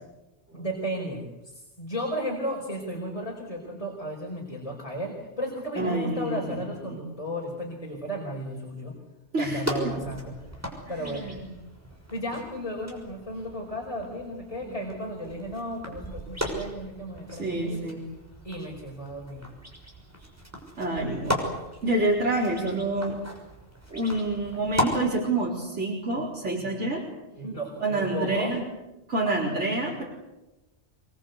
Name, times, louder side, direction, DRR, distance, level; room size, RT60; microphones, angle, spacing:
voice 1, 0.5-8.9 9.4-10.3 10.9-11.3 12.1-17.8 18.4-19.5 26.6-26.7 27.4-28.5, equal, 30° left, 0 dB, 5.0 m, -34 dB
voice 2, 5.8-6.4 6.9-7.0 9.3-9.9 11.0-11.5 14.6-14.8 17.3-18.0 20.8-21.5 21.8-23.2 23.9-27.0 27.3-27.4 27.8-28.6 29.1-30.0, right 2 dB, 90° right, -3 dB, 4.7 m, -28 dB
sound 1, 9.6-24.9, equal, 15° right, 6.2 m, -36 dB
26.0 x 23.0 x 8.2 m, 1.0 s
omnidirectional pair, 1.2 m